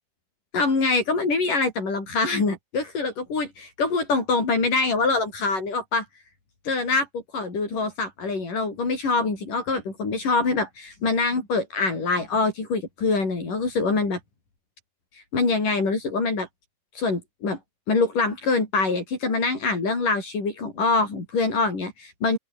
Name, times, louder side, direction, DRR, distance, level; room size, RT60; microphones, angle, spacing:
voice 1, 0.5-6.1 6.7-7.1 7.3-14.2 15.1-16.5 17.0-17.6 17.9-22.4, left 3 dB, 75° left, 8.9 m, -24 dB
open air
omnidirectional pair, 3.8 m